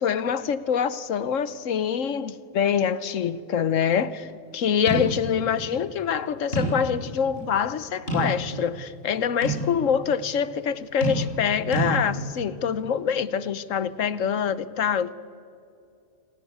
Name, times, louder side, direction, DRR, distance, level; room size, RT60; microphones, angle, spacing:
voice 1, 0.0-15.1, left 7 dB, 65° left, 1.2 m, -25 dB
sound 1, 4.9-5.1 5.5-5.6 6.5-6.9 7.4-7.5 8.1-8.6 9.4-9.7 11.0-11.5 11.7-11.9, right 2 dB, 40° left, 7.5 m, -27 dB
27.5 x 19.5 x 9.5 m
omnidirectional pair, 1.5 m